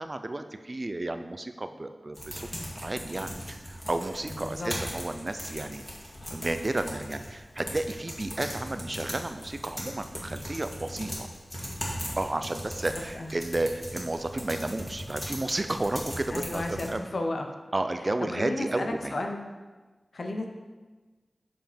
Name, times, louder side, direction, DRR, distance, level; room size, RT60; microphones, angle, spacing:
voice 1, 0.0-2.5 2.8-5.8 6.3-11.3 12.2-17.1 17.7-19.1, right 2 dB, 40° right, 8 dB, 0.5 m, -32 dB
sound 1, 2.1-16.9, equal, 25° left, 2.1 m, -39 dB
voice 2, 16.3-17.5 18.2-19.4 20.1-20.4, left 2 dB, 80° left, 3 dB, 0.9 m, -33 dB
7.7 x 5.0 x 5.1 m, 1.3 s
wide cardioid pair, 75°, 0 cm